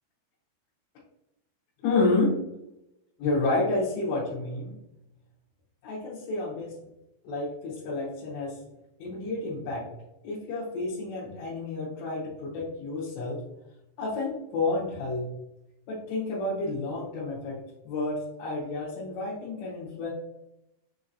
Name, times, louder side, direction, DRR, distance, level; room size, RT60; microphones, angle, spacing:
voice 1, 1.8-2.3 3.2-4.7 5.8-6.7 7.2-8.6 9.0-9.8 10.2-13.4 14.0-15.3 15.9-17.6 17.8-20.1, left 2 dB, 75° left, -7 dB, 3.1 m, -30 dB
7.4 x 2.8 x 2.6 m, 0.89 s
omnidirectional pair, 5.3 m